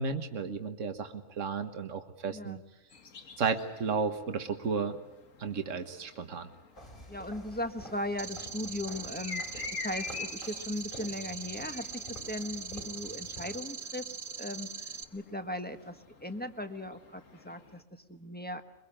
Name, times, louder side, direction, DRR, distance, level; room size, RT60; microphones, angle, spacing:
voice 1, 0.0-2.6 3.4-4.9 5.4-6.5, right 5 dB, 75° right, 7 dB, 1.7 m, -33 dB
voice 2, 2.3-2.6 7.1-18.6, left 1 dB, 10° left, 7 dB, 1.4 m, -38 dB
sound 1, 2.9-17.8, left 5 dB, 85° left, 2.1 m, -48 dB
sound 2, 6.7-13.6, left 1 dB, 40° left, 4.4 m, -49 dB
sound 3, 8.2-15.0, right 5 dB, 45° right, 1.3 m, -42 dB
23.5 x 22.5 x 8.8 m, 0.93 s
omnidirectional pair, 1.3 m